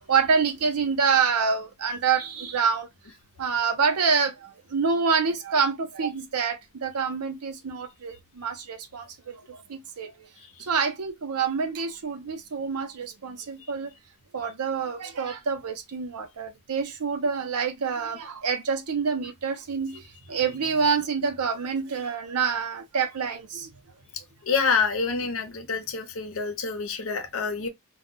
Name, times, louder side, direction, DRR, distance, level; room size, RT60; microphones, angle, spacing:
voice 1, 0.1-2.9 3.4-10.3 10.6-13.9 14.3-23.7, right 5 dB, 90° right, 0.6 m, -27 dB
voice 2, 24.4-27.7, left 5 dB, 65° left, 0.7 m, -27 dB
2.3 x 2.2 x 3.6 m
head